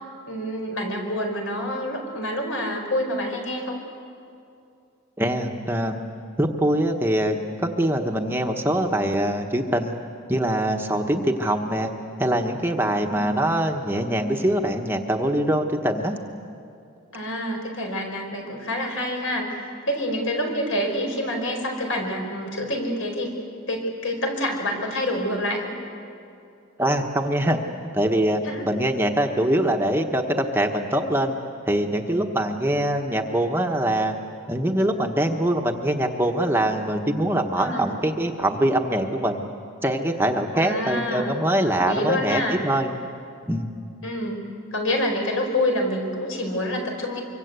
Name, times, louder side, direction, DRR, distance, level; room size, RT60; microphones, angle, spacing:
voice 1, 0.3-3.8 13.0-13.2 17.1-23.3 23.7-25.7 28.4-28.7 37.6-37.9 40.5-41.4 41.6-42.6 44.0-47.2, left 1 dB, 75° left, 2 dB, 5.1 m, -27 dB
voice 2, 5.2-6.0 6.4-10.0 10.3-11.9 12.2-16.2 26.8-27.6 27.9-31.4 31.7-34.1 34.5-39.4 39.8-42.9 43.5-43.7, right 1 dB, 10° right, 3 dB, 1.1 m, -23 dB
24.5 x 24.5 x 8.2 m, 2.5 s
head